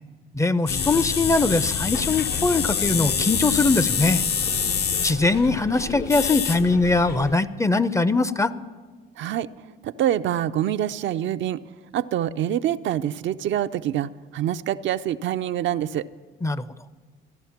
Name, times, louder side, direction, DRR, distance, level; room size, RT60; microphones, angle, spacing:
voice 1, 0.3-4.2 5.0-8.5 16.4-16.6, left 3 dB, 15° left, 15 dB, 0.5 m, -21 dB
sound 1, 0.7-7.3, left 7 dB, 50° left, 0.6 m, -26 dB
voice 2, 9.2-9.5 9.8-11.6 11.9-16.0, right 11 dB, 65° right, 11 dB, 0.4 m, -25 dB
14.5 x 11.0 x 5.8 m, 1.4 s
supercardioid pair, 75°, 21 cm